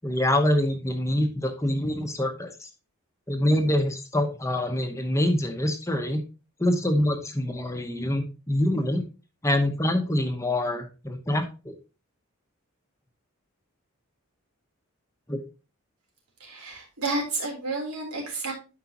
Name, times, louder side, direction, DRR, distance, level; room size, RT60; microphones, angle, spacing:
voice 1, 0.0-2.7 3.3-6.2 6.6-9.0 9.4-11.7 15.3-15.4, left 1 dB, 15° left, 5 dB, 0.9 m, -25 dB
voice 2, 16.4-18.5, right 2 dB, 85° right, -1 dB, 3.7 m, -31 dB
12.0 x 4.9 x 2.9 m, 0.32 s
head